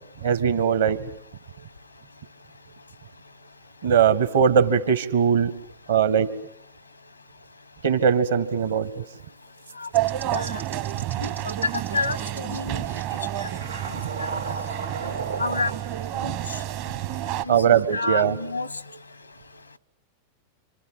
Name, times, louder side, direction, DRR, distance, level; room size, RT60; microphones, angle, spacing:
voice 1, 0.2-1.0 3.8-5.5 5.9-6.3 7.8-9.0 10.9-11.0 17.5-18.4, right 7 dB, 65° right, 11 dB, 1.9 m, -20 dB
sound 1, 9.6-15.8, right 4 dB, 85° right, 2.7 m, -36 dB
sound 2, 9.9-17.5, right 13 dB, 45° right, 1.1 m, -30 dB
voice 2, 10.3-10.6 11.2-11.3 11.9-12.9 13.4-13.5 13.9-14.5 15.0-15.7 16.1-16.6 17.4-18.8, left 3 dB, 85° left, 18 dB, 1.1 m, -30 dB
27.5 x 26.5 x 7.9 m, 0.72 s
figure-of-eight pair, 90°, 0 cm